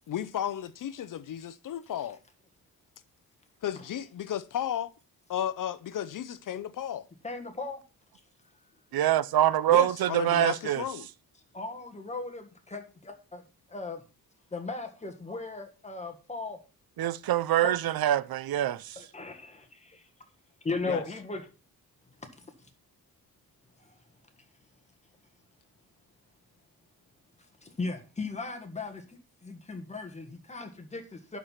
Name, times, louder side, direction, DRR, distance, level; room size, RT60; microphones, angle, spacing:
voice 1, 0.1-2.2 3.6-4.9 5.3-7.1 9.7-11.1 20.9-21.0, left 10 dB, 60° left, 0.6 m, -33 dB
voice 2, 7.2-7.8 11.5-13.4 13.7-14.0 14.5-16.6 17.6-17.8 18.9-20.1 20.6-21.5 22.2-22.3 23.8-24.0 27.6-31.4, left 3 dB, 20° left, 1.6 m, -37 dB
voice 3, 8.9-10.8 17.0-19.0, right 13 dB, 70° right, 0.6 m, -25 dB
11.5 x 4.7 x 5.7 m
wide cardioid pair, 150°, 37 cm